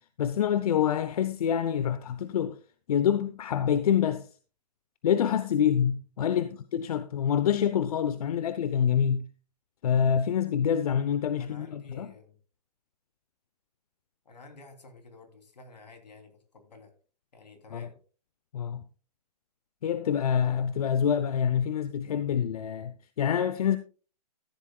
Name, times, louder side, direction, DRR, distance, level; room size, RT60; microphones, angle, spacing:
voice 1, 0.2-2.6 2.9-4.3 5.0-9.3 9.8-12.1 17.7-17.9 18.5-18.8 19.8-23.8, left 8 dB, 60° left, 0.8 m, -26 dB
voice 2, 11.4-12.4 14.2-16.9 17.3-17.9, left 2 dB, 85° left, 3.2 m, -51 dB
14.0 x 11.0 x 2.3 m
hypercardioid pair, 135°, 21 cm